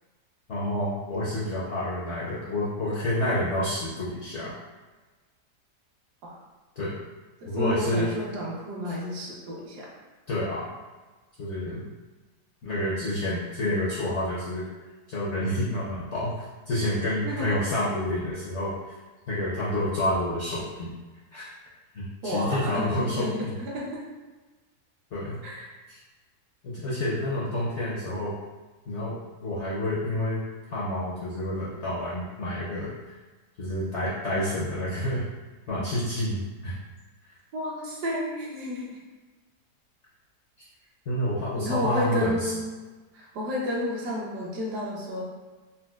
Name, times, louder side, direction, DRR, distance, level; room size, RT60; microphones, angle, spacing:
voice 1, 0.5-4.5 6.8-6.9 7.5-8.1 10.3-10.7 11.4-11.9 12.6-14.6 15.1-18.7 19.3-20.9 21.3-21.5 21.9-23.5 25.1-25.4 25.9-26.0 26.6-28.4 28.9-29.1 29.4-30.4 30.7-32.9 33.6-35.2 35.7-36.7 41.1-42.5, left 1 dB, 65° left, -8 dB, 0.7 m, -29 dB
voice 2, 7.4-9.9 13.0-13.1 17.2-17.6 22.2-23.9 25.4-25.7 37.5-39.0 41.5-42.7 43.1-45.2, left 1 dB, 75° right, -4 dB, 1.3 m, -31 dB
4.1 x 2.1 x 2.3 m, 1.3 s
omnidirectional pair, 1.8 m